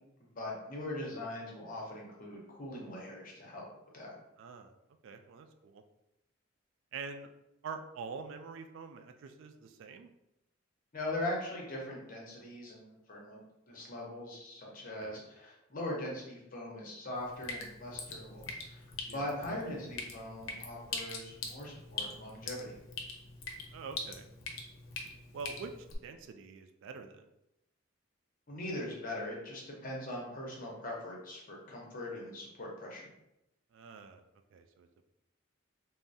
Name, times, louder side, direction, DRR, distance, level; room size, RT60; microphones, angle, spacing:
voice 1, 0.3-3.7 3.9-4.1 10.9-13.4 13.7-18.8 19.1-22.8 28.5-33.1, left 1 dB, 45° left, -2 dB, 0.8 m, -41 dB
voice 2, 4.4-4.7 5.0-5.8 6.9-7.3 7.6-10.1 15.0-15.2 19.1-19.2 23.7-24.3 25.3-25.7 26.0-27.3 33.7-34.2 34.5-34.9, right 5 dB, 70° right, 6 dB, 0.3 m, -45 dB
Drip, 17.1-26.0, left 4 dB, 85° left, 0.5 m, -43 dB
3.5 x 2.0 x 2.6 m, 0.87 s
head